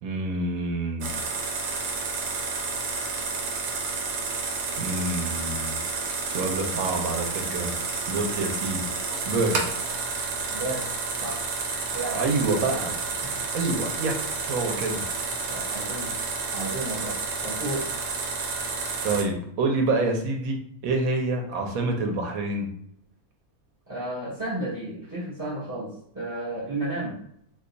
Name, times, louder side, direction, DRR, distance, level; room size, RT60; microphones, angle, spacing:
voice 1, 0.0-1.2 4.8-5.8 6.3-8.9 9.2-9.7 12.1-13.0 13.5-15.1 19.0-22.7, right 2 dB, 70° right, 2 dB, 1.0 m, -27 dB
sound 1, 1.0-19.2, right 4 dB, 85° right, 1.2 m, -30 dB
voice 2, 10.5-10.9 11.2-11.4 11.9-12.3 12.7-12.8 13.2-13.4 15.5-16.1 16.5-17.9 23.9-27.2, right 2 dB, 20° right, -7 dB, 0.5 m, -33 dB
2.7 x 2.3 x 3.8 m, 0.67 s
omnidirectional pair, 1.7 m